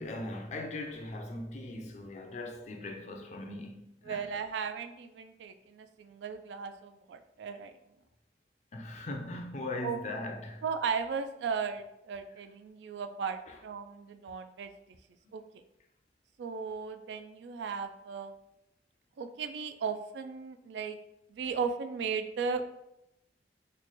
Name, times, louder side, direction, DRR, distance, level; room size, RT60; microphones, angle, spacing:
voice 1, 0.0-4.2 8.7-10.6 13.5-13.6 15.2-15.3, left 2 dB, 40° left, 0.4 m, -39 dB
voice 2, 4.0-7.7 9.8-10.0 10.6-14.7 15.3-15.4 16.4-18.3 19.2-21.0 21.3-22.7, right 5 dB, 80° right, 0.3 m, -36 dB
3.1 x 2.1 x 4.0 m
head